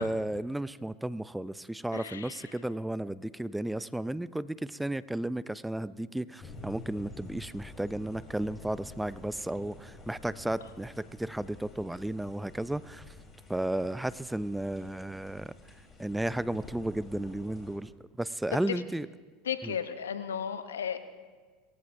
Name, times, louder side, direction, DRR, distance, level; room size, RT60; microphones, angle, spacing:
voice 1, 0.0-13.1 13.5-15.5 16.0-17.9 18.2-19.1 19.6-19.8, right 1 dB, 5° right, 17 dB, 0.4 m, -33 dB
voice 2, 1.9-2.5 18.7-18.8 19.5-21.0, left 8 dB, 90° left, 10 dB, 0.8 m, -34 dB
sound 1, 6.4-17.8, left 2 dB, 25° left, 3.7 m, -49 dB
22.5 x 15.5 x 2.6 m, 1.5 s
hypercardioid pair, 85°, 0 cm